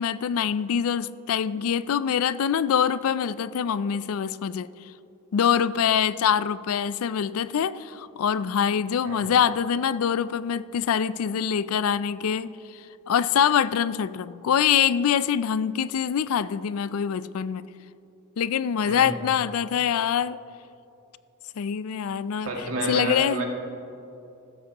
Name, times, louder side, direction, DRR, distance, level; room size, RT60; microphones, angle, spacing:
voice 1, 0.0-4.7 5.3-12.5 13.1-17.7 18.4-20.4 21.6-22.5 22.9-23.4, left 8 dB, 70° left, 17 dB, 0.4 m, -24 dB
voice 2, 18.8-19.2 22.4-23.4, right 2 dB, 70° right, -1 dB, 2.1 m, -29 dB
15.5 x 12.5 x 2.9 m, 2.9 s
head